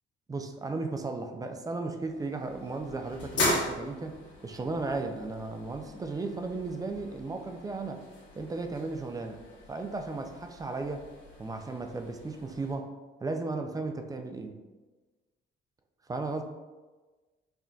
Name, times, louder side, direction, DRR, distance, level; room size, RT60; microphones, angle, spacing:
voice 1, 0.3-8.0 8.4-9.4 9.7-11.0 11.4-12.9 13.2-14.6 16.1-16.4, right 3 dB, 20° right, 6 dB, 0.4 m, -35 dB
sound 1, 1.9-12.7, left 2 dB, 65° left, 1.3 m, -38 dB
5.6 x 2.5 x 2.3 m, 1.3 s
cardioid pair, 90°, 20 cm